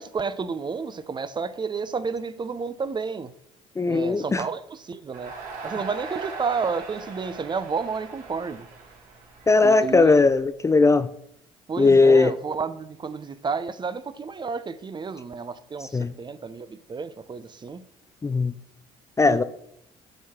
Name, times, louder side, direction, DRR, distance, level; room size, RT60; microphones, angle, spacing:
voice 1, 0.0-3.3 3.9-5.3 5.6-8.7 9.6-10.2 11.7-17.8 19.2-19.4, right 5 dB, 30° right, 0.7 m, -31 dB
voice 2, 3.8-4.5 9.5-11.1 11.8-12.3 15.9-16.1 18.2-18.5 19.2-19.4, left 3 dB, 20° left, 0.5 m, -18 dB
Crowd, 5.1-10.3, right 4 dB, 55° right, 2.8 m, -39 dB
11.0 x 4.7 x 4.4 m
hypercardioid pair, 60°, 16 cm